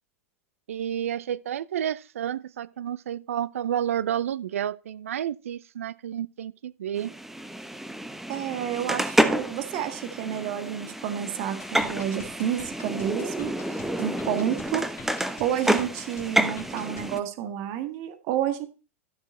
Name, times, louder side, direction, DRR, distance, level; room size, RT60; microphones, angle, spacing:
voice 1, 0.7-7.1, right 10 dB, 75° right, 0.4 m, -30 dB
sound 1, 7.0-17.2, right 1 dB, 5° right, 0.9 m, -29 dB
voice 2, 8.3-18.7, right 10 dB, 50° right, 1.8 m, -30 dB
sound 2, 11.6-17.2, left 8 dB, 40° left, 3.2 m, -48 dB
12.5 x 7.2 x 4.3 m
hypercardioid pair, 90°, 8 cm